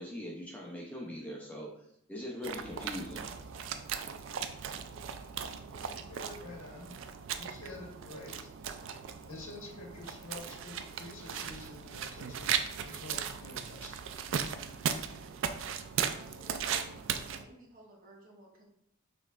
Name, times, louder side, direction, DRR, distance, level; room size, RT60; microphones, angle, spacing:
voice 1, 0.0-3.3, left 1 dB, 5° left, -3 dB, 0.5 m, -41 dB
sound 1, 2.4-17.4, right 7 dB, 60° right, 0.3 m, -37 dB
voice 2, 6.1-6.9 7.4-8.5 9.3-12.5 12.8-13.9, left 2 dB, 75° left, 0 dB, 1.2 m, -47 dB
voice 3, 15.7-18.6, right 1 dB, 40° right, -2 dB, 0.8 m, -56 dB
5.2 x 3.3 x 2.4 m, 0.70 s
head